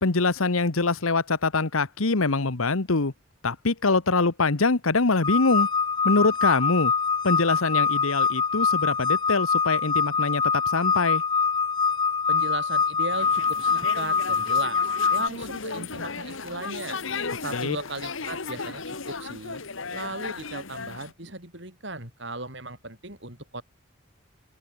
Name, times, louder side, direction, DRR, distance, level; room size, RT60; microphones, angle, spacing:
voice 1, 0.0-3.1 3.4-5.7 6.0-6.9 7.2-11.2 17.5-17.8, left 3 dB, 85° left, 1.3 m, -24 dB
sound 1, 5.2-15.3, left 5 dB, 20° left, 0.7 m, -24 dB
voice 2, 12.3-17.0 17.4-19.6 19.9-23.6, right 2 dB, 55° right, 6.7 m, -37 dB
sound 2, 13.1-21.1, left 4 dB, 70° left, 1.5 m, -35 dB
open air
head